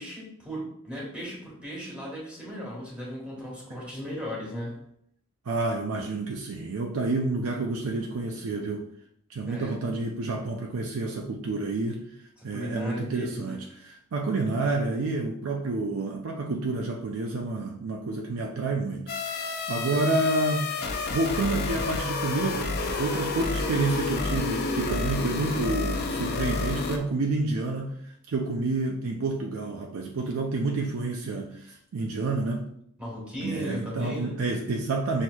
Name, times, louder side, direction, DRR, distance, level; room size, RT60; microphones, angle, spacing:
voice 1, 0.0-4.9 9.4-9.8 12.4-13.6 19.8-20.2 33.0-34.4, equal, 5° right, -5 dB, 1.4 m, -36 dB
voice 2, 5.5-8.9 9.3-12.0 12.4-28.0 28.3-32.7 33.4-35.2, right 3 dB, 65° right, 1 dB, 0.4 m, -29 dB
sound 1, 19.1-27.0, left 3 dB, 45° left, 0.5 m, -30 dB
6.0 x 2.8 x 2.3 m, 0.71 s
head